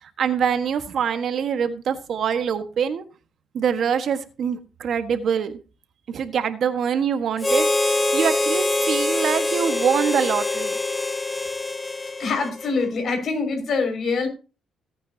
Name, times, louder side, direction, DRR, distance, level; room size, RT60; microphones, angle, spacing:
voice 1, 0.0-3.0 3.5-5.5 6.1-10.8, right 7 dB, 60° right, 9 dB, 1.5 m, -24 dB
Harmonica, 7.4-12.9, left 2 dB, 20° left, 0.7 m, -24 dB
voice 2, 12.2-14.3, left 4 dB, 55° left, 4 dB, 5.8 m, -24 dB
17.5 x 9.2 x 2.8 m, 0.32 s
cardioid pair, 90°, 0 cm